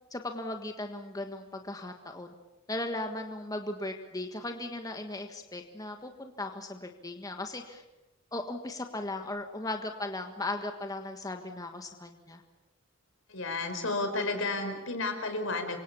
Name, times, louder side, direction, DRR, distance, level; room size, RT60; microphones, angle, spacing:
voice 1, 0.1-2.3 2.7-7.8 8.3-12.4, left 2 dB, 20° left, 5 dB, 1.5 m, -37 dB
voice 2, 13.3-15.8, left 3 dB, 75° left, 6 dB, 5.2 m, -32 dB
28.0 x 24.5 x 7.1 m, 1.0 s
head